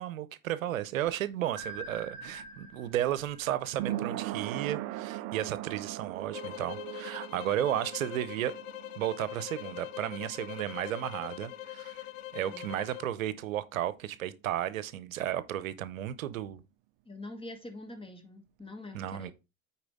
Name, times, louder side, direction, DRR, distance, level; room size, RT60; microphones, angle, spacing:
voice 1, 0.0-8.5 9.0-12.0 12.3-16.6 18.9-19.3, right 12 dB, 85° right, 0.7 m, -33 dB
sound 1, 1.1-12.2 12.5-12.6, right 15 dB, 50° right, 0.5 m, -41 dB
sound 2, 1.5-4.5, right 2 dB, ahead, 4.0 m, -46 dB
sound 3, 6.3-13.1, left 16 dB, 75° left, 0.7 m, -43 dB
voice 2, 17.1-19.3, left 2 dB, 15° left, 2.0 m, -45 dB
9.0 x 4.3 x 3.5 m
hypercardioid pair, 85°, 39 cm